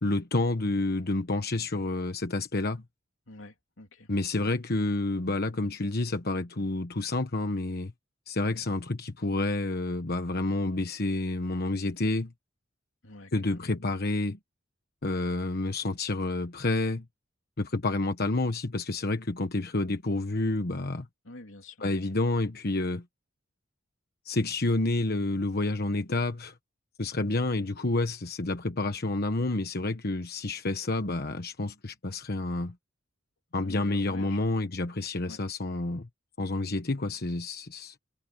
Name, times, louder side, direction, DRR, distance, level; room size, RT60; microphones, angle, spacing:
voice 1, 0.0-2.8 4.1-7.9 8.3-12.3 13.3-14.4 15.0-17.0 17.6-21.1 21.8-23.0 24.2-26.5 27.0-32.7 33.5-36.1 36.4-37.9, left 2 dB, 50° left, 1.2 m, -29 dB
voice 2, 3.3-4.1 13.0-13.7 21.2-21.8 33.6-34.5 35.3-35.4, left 2 dB, 75° left, 3.4 m, -47 dB
head